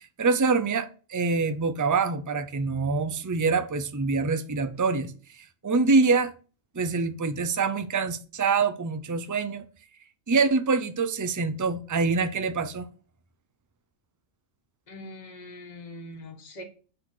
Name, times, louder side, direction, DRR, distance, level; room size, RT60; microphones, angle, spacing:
voice 1, 0.2-5.1 5.6-6.3 6.7-9.7 10.3-12.9, right 4 dB, 25° right, 0.4 m, -25 dB
voice 2, 14.9-16.6, left 1 dB, 30° left, 1.6 m, -42 dB
8.8 x 4.1 x 6.7 m
omnidirectional pair, 1.4 m